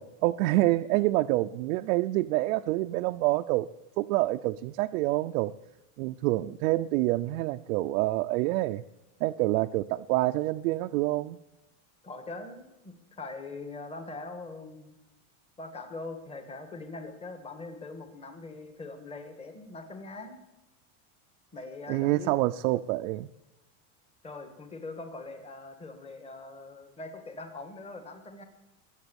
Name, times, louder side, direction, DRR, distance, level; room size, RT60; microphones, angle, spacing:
voice 1, 0.0-3.7 4.0-5.5 6.0-8.8 9.2-11.4 21.9-23.3, right 18 dB, 75° right, 7 dB, 0.6 m, -27 dB
voice 2, 12.0-14.9 15.6-20.4 21.5-22.4 24.2-28.4, left 3 dB, 15° left, 7 dB, 1.6 m, -42 dB
21.5 x 8.2 x 7.0 m, 0.94 s
supercardioid pair, 155°, 42 cm